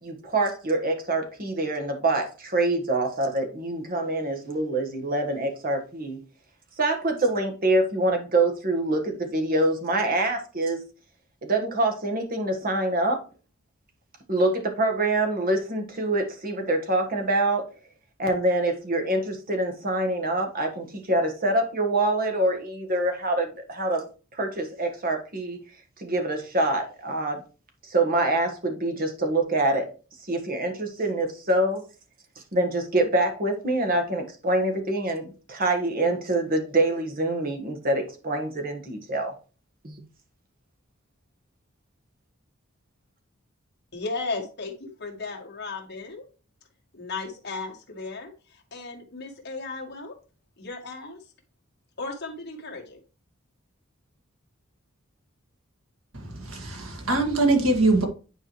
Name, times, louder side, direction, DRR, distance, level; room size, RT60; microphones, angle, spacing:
voice 1, 0.0-6.2 6.8-10.8 11.4-13.2 14.3-17.6 18.2-24.0 24.3-25.6 26.0-27.4 27.8-29.9 30.2-31.8 32.5-39.3 39.8-40.0, right 2 dB, 45° right, 4 dB, 1.5 m, -25 dB
voice 2, 43.9-46.2 46.9-50.2 50.6-51.2 52.0-53.0, left 3 dB, 50° left, 0 dB, 1.7 m, -35 dB
voice 3, 56.1-58.0, right 2 dB, 80° right, 3 dB, 1.9 m, -23 dB
9.4 x 4.8 x 3.1 m, 0.35 s
head